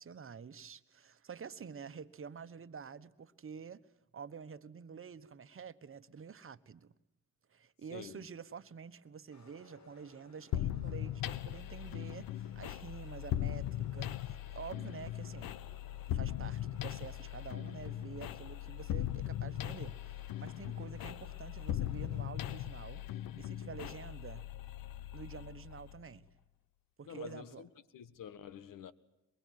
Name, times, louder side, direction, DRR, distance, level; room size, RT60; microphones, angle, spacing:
voice 1, 0.0-3.8 4.1-6.9 7.5-15.6 16.1-23.0 23.3-24.4 25.1-26.3 27.0-27.6, right 6 dB, 40° right, 1.3 m, -48 dB
voice 2, 7.9-8.2 27.0-28.9, left 9 dB, 70° left, 1.6 m, -48 dB
sound 1, 9.3-22.3, left 3 dB, 55° left, 5.0 m, -63 dB
sound 2, 10.5-26.2, left 12 dB, 90° left, 1.0 m, -39 dB
23.0 x 22.5 x 9.5 m
cardioid pair, 85°, 34 cm